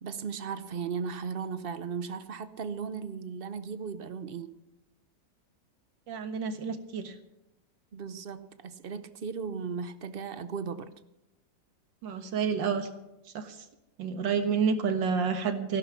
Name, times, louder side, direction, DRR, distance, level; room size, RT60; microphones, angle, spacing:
voice 1, 0.0-4.5 7.9-10.9 14.4-14.5, right 6 dB, 55° right, 12 dB, 0.6 m, -36 dB
voice 2, 6.1-7.2 12.0-12.9 13.3-13.7 14.0-15.8, right 6 dB, 90° right, 7 dB, 2.1 m, -29 dB
15.5 x 12.0 x 6.0 m, 0.93 s
omnidirectional pair, 2.0 m